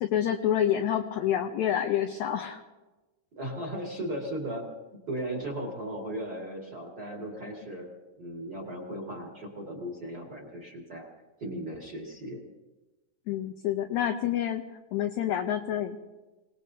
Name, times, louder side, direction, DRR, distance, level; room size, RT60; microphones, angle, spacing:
voice 1, 0.0-2.6 13.3-14.6 14.9-16.0, left 10 dB, 80° left, 5 dB, 1.7 m, -28 dB
voice 2, 3.3-4.6 5.1-7.9 8.2-11.1 11.4-12.4, right 1 dB, 35° right, -1 dB, 1.9 m, -36 dB
26.5 x 18.5 x 2.7 m, 1.2 s
omnidirectional pair, 4.1 m